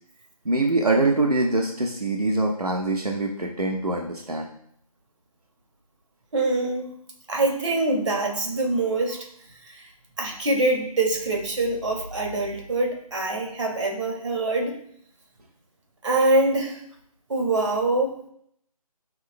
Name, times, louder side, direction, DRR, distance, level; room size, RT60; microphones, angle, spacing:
voice 1, 0.4-4.5, right 2 dB, 85° right, 1 dB, 1.3 m, -24 dB
voice 2, 6.3-6.9 7.3-9.2 9.7-9.8 10.2-14.8 16.0-16.8 17.3-18.1, right 2 dB, 55° right, 1 dB, 2.3 m, -24 dB
11.5 x 6.5 x 2.2 m, 0.68 s
figure-of-eight pair, 155°, 19 cm